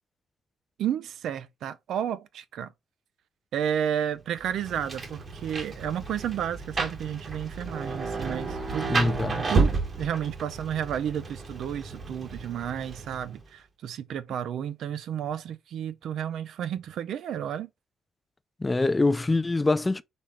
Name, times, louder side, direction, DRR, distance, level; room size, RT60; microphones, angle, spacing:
voice 1, 0.8-2.7 3.5-9.7 10.0-17.7, right 9 dB, 75° right, 0.5 m, -32 dB
Rain, 4.4-13.4, right 3 dB, 40° right, 1.2 m, -31 dB
voice 2, 8.9-9.5 18.6-20.0, left 2 dB, 20° left, 0.4 m, -24 dB
4.2 x 3.2 x 3.5 m
cardioid pair, 90°, 0 cm